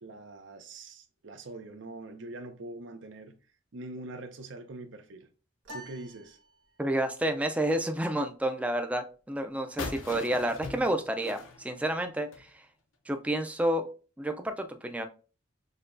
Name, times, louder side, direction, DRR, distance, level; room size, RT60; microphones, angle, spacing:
voice 1, 0.0-3.4 3.7-5.3 5.7-6.4, right 2 dB, 70° right, 0.6 m, -43 dB
sound 1, 5.6-7.1, equal, 90° right, 1.3 m, -48 dB
voice 2, 6.8-12.5 13.1-13.9 14.2-15.0, right 1 dB, 5° right, 0.4 m, -30 dB
sound 2, 9.8-12.5, left 3 dB, 85° left, 0.6 m, -41 dB
6.5 x 2.3 x 2.5 m
head